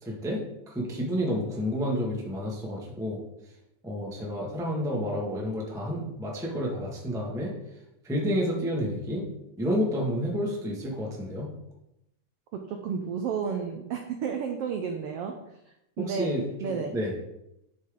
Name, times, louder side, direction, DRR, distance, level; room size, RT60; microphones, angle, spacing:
voice 1, 0.0-3.2 3.8-7.5 8.0-9.2 9.6-11.5 16.0-17.1, equal, 5° right, -2 dB, 0.6 m, -30 dB
voice 2, 12.5-15.3 16.0-16.3 16.6-16.9, right 6 dB, 85° right, 4 dB, 1.3 m, -31 dB
10.5 x 6.1 x 3.8 m, 0.86 s
omnidirectional pair, 3.6 m